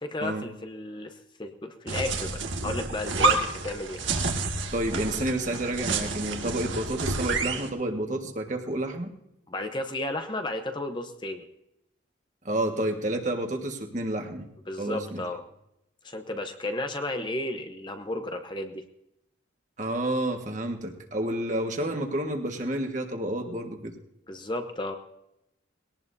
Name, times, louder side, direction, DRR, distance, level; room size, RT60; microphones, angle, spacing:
voice 1, 0.0-4.0 9.5-11.5 14.7-15.4 16.0-18.8 24.3-24.9, left 1 dB, 25° left, 6 dB, 0.8 m, -33 dB
sound 1, 1.9-7.7, right 3 dB, 80° right, 1.9 m, -29 dB
voice 2, 4.7-9.1 12.4-14.5 14.8-15.2 19.8-23.9, right 1 dB, 40° right, 3 dB, 1.6 m, -30 dB
21.0 x 18.0 x 2.7 m, 0.85 s
head